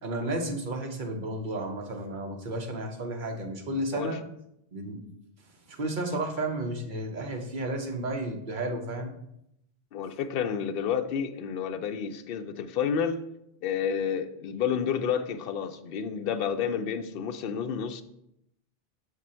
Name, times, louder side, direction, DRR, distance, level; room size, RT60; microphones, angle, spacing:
voice 1, 0.0-4.2 4.7-5.0 5.7-9.1, right 1 dB, 50° right, 2 dB, 1.1 m, -32 dB
voice 2, 9.9-13.3 13.6-18.0, left 7 dB, 65° left, 8 dB, 0.7 m, -30 dB
7.2 x 3.7 x 4.3 m, 0.79 s
omnidirectional pair, 1.1 m